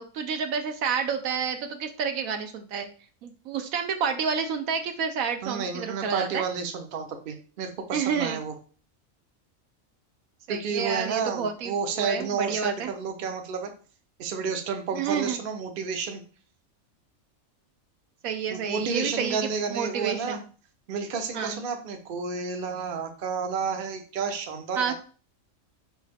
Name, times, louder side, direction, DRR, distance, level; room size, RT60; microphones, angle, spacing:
voice 1, 0.0-2.9 3.2-6.4 7.9-8.4 10.5-12.9 14.9-15.4 18.2-20.4 21.3-21.6 24.8-24.9, right 6 dB, 80° right, 6 dB, 1.1 m, -29 dB
voice 2, 5.4-8.5 10.5-13.7 14.2-16.2 18.5-20.4 20.9-24.9, right 5 dB, 50° right, 5 dB, 0.7 m, -31 dB
4.6 x 3.2 x 3.3 m, 0.39 s
omnidirectional pair, 1.4 m